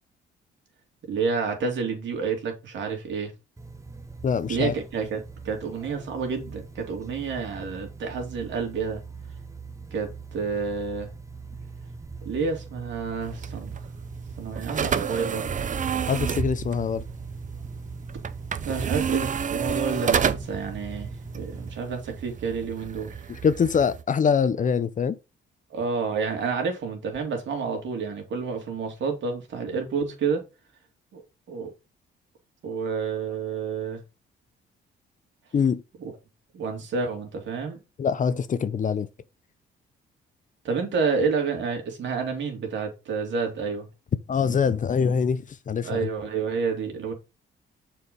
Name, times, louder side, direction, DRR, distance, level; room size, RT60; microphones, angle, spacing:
voice 1, 1.1-3.3 4.5-9.0 9.9-11.1 12.2-13.8 14.4-15.5 18.6-23.1 25.7-30.4 31.1-31.2 31.5-31.7 32.6-34.0 36.5-37.8 40.6-43.9 45.8-47.1, right 5 dB, 70° right, 2.8 m, -29 dB
sound 1, 3.6-21.8, right 4 dB, 15° right, 1.2 m, -41 dB
voice 2, 4.2-4.7 16.1-17.0 23.3-25.2 35.5-35.8 38.0-39.1 44.3-46.1, left 6 dB, 40° left, 0.7 m, -24 dB
sound 2, 13.2-24.0, right 7 dB, 40° right, 0.7 m, -30 dB
6.8 x 4.7 x 5.3 m
cardioid pair, 90°, 20 cm